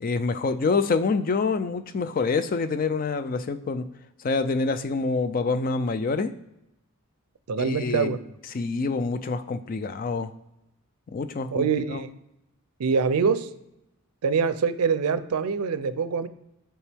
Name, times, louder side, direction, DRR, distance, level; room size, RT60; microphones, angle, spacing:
voice 1, 0.0-3.9 4.2-6.3 7.6-8.2 8.5-10.3 11.1-12.0, left 4 dB, 40° left, 11 dB, 0.3 m, -26 dB
voice 2, 7.5-8.2 11.5-12.1 12.8-13.5 14.2-16.3, right 5 dB, 90° right, 13 dB, 0.5 m, -24 dB
7.2 x 4.4 x 3.5 m, 0.85 s
head